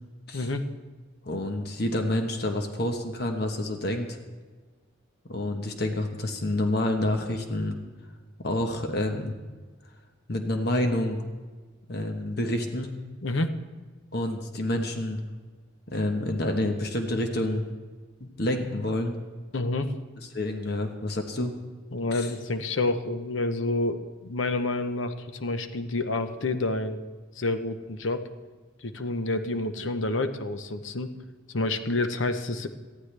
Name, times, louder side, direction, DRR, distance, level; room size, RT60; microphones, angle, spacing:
voice 1, 0.3-0.6 13.2-13.5 19.5-19.9 21.9-25.1 25.4-27.0 27.4-28.3 28.8-31.1 31.5-32.7, left 2 dB, 80° left, 9 dB, 0.9 m, -28 dB
voice 2, 1.2-4.2 5.3-7.8 8.4-9.3 10.3-11.2 11.9-12.9 14.1-15.2 15.9-17.6 18.2-19.2 20.3-21.6 22.1-22.3, left 1 dB, 55° left, 4 dB, 1.2 m, -28 dB
19.0 x 13.5 x 3.4 m, 1.3 s
head